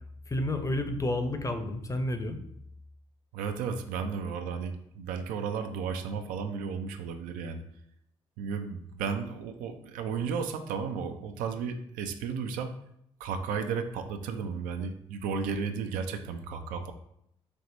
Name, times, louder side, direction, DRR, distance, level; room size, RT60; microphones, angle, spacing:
voice 1, 0.3-2.4, left 1 dB, 20° left, 7 dB, 0.6 m, -30 dB
voice 2, 3.3-7.6 8.4-12.7 13.2-16.9, right 6 dB, 65° right, 7 dB, 0.5 m, -34 dB
4.5 x 3.1 x 2.6 m, 0.75 s
figure-of-eight pair, 40°, 15 cm